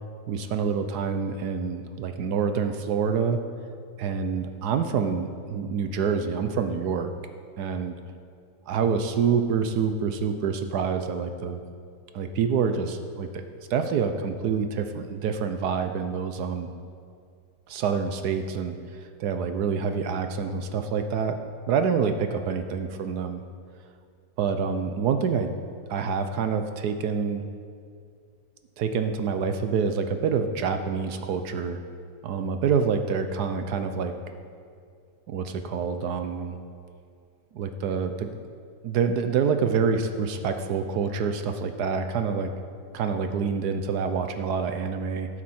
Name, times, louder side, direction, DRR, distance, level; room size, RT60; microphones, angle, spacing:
voice 1, 0.3-3.4 4.0-7.1 7.6-8.0 8.7-11.6 12.1-13.3 13.7-16.7 17.7-18.8 19.2-21.4 21.7-23.4 24.4-25.5 25.9-27.4 28.8-31.8 32.2-34.1 35.3-36.6 37.5-38.3 38.8-42.5 42.9-45.3, right 6 dB, 65° right, 7 dB, 1.1 m, -27 dB
17.0 x 7.3 x 4.3 m, 2.3 s
omnidirectional pair, 2.0 m